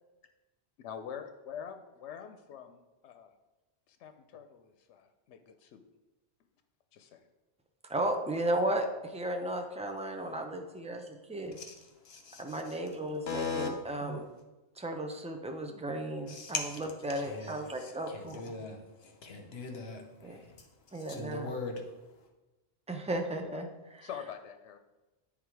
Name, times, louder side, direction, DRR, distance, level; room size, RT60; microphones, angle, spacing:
voice 1, 0.8-3.3 3.9-5.8 6.9-7.3 23.4-23.7 24.0-24.8, left 8 dB, 85° left, 7 dB, 0.9 m, -45 dB
voice 2, 7.9-11.6 12.4-14.3 14.8-18.4 20.2-20.4 20.9-21.5 22.9-23.7, right 1 dB, 10° right, 3 dB, 0.4 m, -34 dB
voice 3, 11.5-12.8 13.3-13.7 16.3-16.8 17.1-22.3, left 4 dB, 65° left, 4 dB, 1.1 m, -40 dB
8.7 x 3.6 x 4.6 m, 1.1 s
omnidirectional pair, 1.1 m